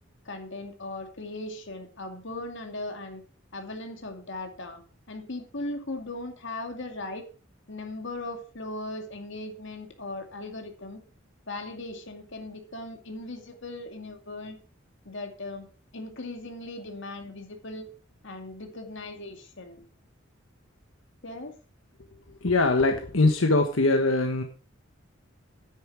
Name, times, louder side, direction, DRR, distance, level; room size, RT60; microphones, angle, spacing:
voice 1, 0.3-3.2 3.5-4.8 5.1-7.3 7.7-11.0 11.5-14.6 15.1-15.7 15.9-17.9 18.2-19.8 21.2-21.6, left 2 dB, 65° left, 5 dB, 2.3 m, -38 dB
voice 2, 22.4-24.4, left 2 dB, 90° left, 5 dB, 1.3 m, -22 dB
9.7 x 9.5 x 4.6 m, 0.37 s
head